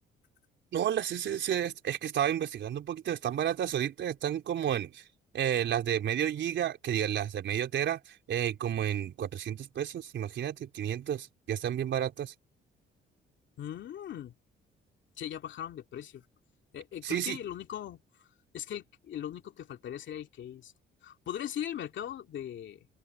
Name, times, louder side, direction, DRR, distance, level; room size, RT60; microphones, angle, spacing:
voice 1, 0.7-5.1 5.3-12.3 17.0-17.4, right 10 dB, 70° right, 3.9 m, -31 dB
voice 2, 13.6-14.3 15.2-16.3 16.7-18.3 18.5-20.7 21.0-22.9, left 10 dB, 70° left, 2.6 m, -39 dB
open air
cardioid pair, 90°, 20 cm